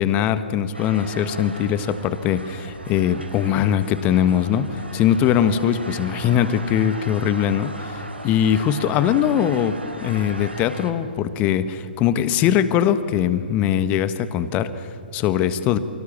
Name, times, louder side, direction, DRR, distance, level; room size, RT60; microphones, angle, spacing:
voice 1, 0.0-15.8, left 9 dB, 25° left, 13 dB, 1.4 m, -21 dB
sound 1, 0.7-10.9, right 1 dB, 85° right, 3.7 m, -37 dB
29.0 x 24.0 x 7.4 m, 2.7 s
figure-of-eight pair, 120°, 6 cm